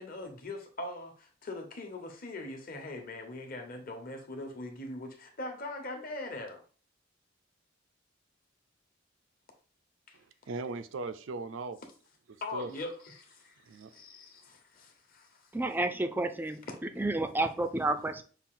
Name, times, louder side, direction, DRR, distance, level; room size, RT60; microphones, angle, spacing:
voice 1, 0.0-6.6 10.1-10.2 12.4-15.5, left 2 dB, 50° left, 1.0 m, -41 dB
voice 2, 10.1-11.8 12.3-12.7 13.7-13.9, right 3 dB, 90° right, 0.5 m, -39 dB
voice 3, 15.5-18.2, right 2 dB, 10° right, 0.3 m, -31 dB
5.8 x 2.5 x 3.7 m
head